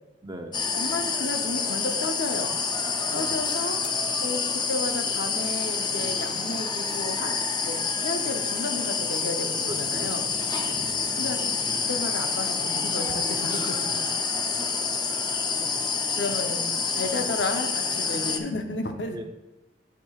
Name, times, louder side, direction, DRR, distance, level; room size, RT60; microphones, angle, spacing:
voice 1, 0.2-0.6 3.1-3.4 9.7-10.4 10.7-11.0 14.4-14.7 15.2-16.0 17.1-17.3 19.1-19.2, right 1 dB, 20° right, 4 dB, 0.7 m, -41 dB
sound 1, 0.5-18.4, left 5 dB, 25° left, 0.5 m, -28 dB
voice 2, 0.7-2.5 3.1-3.8 4.2-7.4 7.6-10.3 11.1-11.4 11.9-14.1 16.2-19.2, left 3 dB, 70° left, 5 dB, 0.8 m, -32 dB
10.0 x 6.0 x 2.4 m, 0.99 s
head